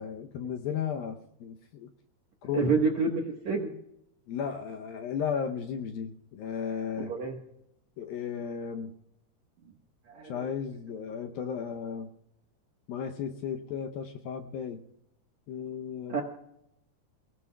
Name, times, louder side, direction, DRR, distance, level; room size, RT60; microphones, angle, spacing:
voice 1, 0.0-1.9 2.4-2.8 4.3-7.1 8.0-8.9 10.2-12.1 12.9-14.8 15.5-16.2, left 7 dB, 75° left, 4 dB, 2.2 m, -35 dB
voice 2, 2.5-3.7 7.0-7.4 10.1-10.4 16.1-16.2, right 4 dB, 65° right, 1 dB, 1.8 m, -28 dB
29.5 x 17.5 x 2.3 m, 0.81 s
omnidirectional pair, 5.0 m